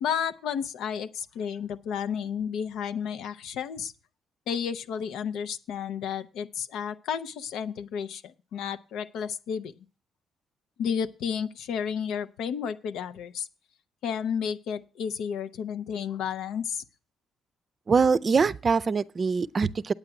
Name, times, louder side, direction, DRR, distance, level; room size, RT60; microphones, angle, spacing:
voice 1, 0.0-3.9 4.5-9.7 10.8-13.5 14.0-16.8, left 7 dB, 85° left, 0.6 m, -32 dB
voice 2, 17.9-19.9, right 5 dB, 40° right, 0.5 m, -23 dB
8.9 x 8.8 x 5.8 m
cardioid pair, 90°, 0 cm